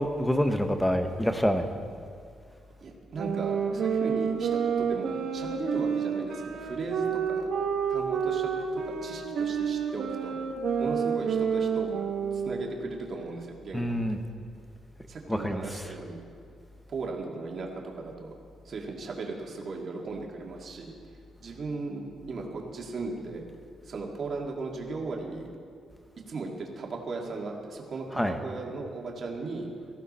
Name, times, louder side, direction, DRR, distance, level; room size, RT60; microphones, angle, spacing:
voice 1, 0.0-1.7 13.7-14.2 15.3-15.9 28.1-28.4, equal, 5° left, 6 dB, 0.9 m, -27 dB
voice 2, 2.8-7.5 7.9-10.4 10.8-12.0 12.3-14.2 15.1-16.2 16.9-18.3 18.6-23.5 23.8-25.5 26.3-29.7, right 3 dB, 45° right, 0 dB, 2.0 m, -37 dB
sound 1, 3.1-12.8, right 6 dB, 65° right, 1.4 m, -29 dB
18.5 x 14.5 x 4.2 m, 2.3 s
cardioid pair, 155°, 0 cm